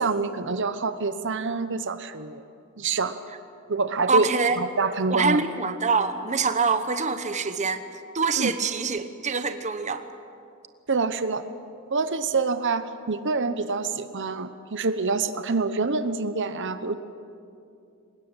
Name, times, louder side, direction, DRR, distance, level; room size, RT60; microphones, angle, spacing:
voice 1, 0.0-2.4 2.8-3.2 3.7-5.4 8.4-8.5 10.9-11.4 11.9-16.9, right 4 dB, 60° right, 11 dB, 1.0 m, -26 dB
voice 2, 4.1-4.6 5.1-7.8 8.1-10.0, right 4 dB, 35° right, 10 dB, 1.0 m, -25 dB
23.0 x 20.5 x 9.0 m, 2.5 s
head